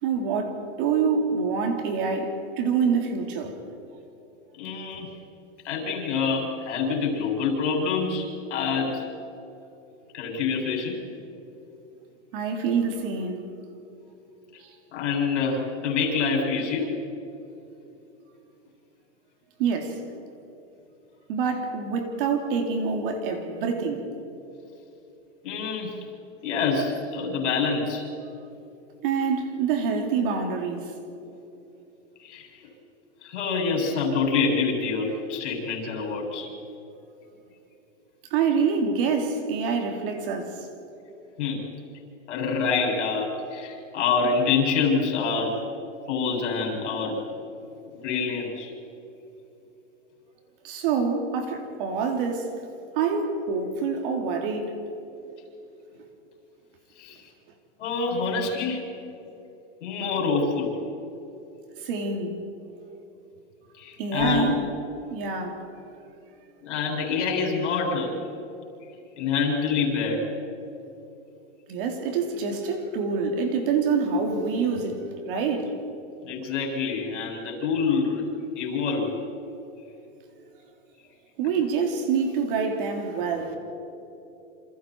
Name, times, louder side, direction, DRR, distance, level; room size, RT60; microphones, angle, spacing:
voice 1, 0.0-3.6 12.3-13.5 14.6-14.7 19.6-20.0 21.3-24.1 29.0-30.9 38.3-40.7 50.6-52.6 52.9-54.7 61.8-62.4 64.0-64.6 65.1-65.6 71.7-75.8 81.4-83.6, right 5 dB, 45° right, 3.3 m, -26 dB
voice 2, 4.5-5.1 5.6-9.1 10.1-11.0 14.9-16.9 25.4-26.0 26.4-28.0 32.2-32.5 33.2-36.5 41.4-41.6 42.3-45.5 46.1-47.2 48.0-48.7 57.0-57.2 57.8-58.8 59.8-60.7 63.8-64.6 66.6-68.1 69.2-70.3 76.2-78.3 78.6-79.2, left 5 dB, 70° left, 7.8 m, -26 dB
29.0 x 27.5 x 4.8 m
supercardioid pair, 170°, 37 cm